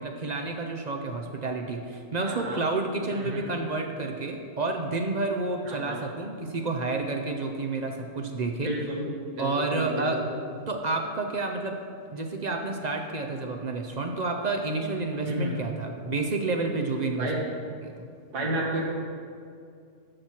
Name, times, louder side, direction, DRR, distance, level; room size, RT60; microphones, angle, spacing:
voice 1, 0.0-8.7 9.4-10.2 10.7-11.8 12.1-17.3 17.8-18.1, right 3 dB, 55° right, 3 dB, 0.4 m, -30 dB
voice 2, 2.2-2.6 3.1-3.4 5.7-6.0 8.6-10.3 15.2-15.5 17.2-17.4 18.3-18.8, right 1 dB, 80° right, -2 dB, 2.2 m, -31 dB
12.5 x 6.1 x 4.5 m, 2.4 s
omnidirectional pair, 1.7 m